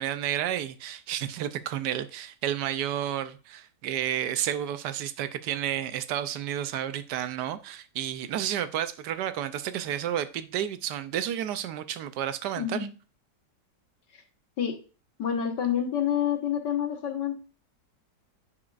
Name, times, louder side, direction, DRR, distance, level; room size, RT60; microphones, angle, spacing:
voice 1, 0.0-12.8, right 10 dB, 75° right, 1.1 m, -31 dB
voice 2, 12.6-12.9 14.1-14.2 14.6-14.8 15.2-17.4, left 9 dB, 75° left, 1.8 m, -28 dB
9.7 x 4.7 x 2.4 m
omnidirectional pair, 1.9 m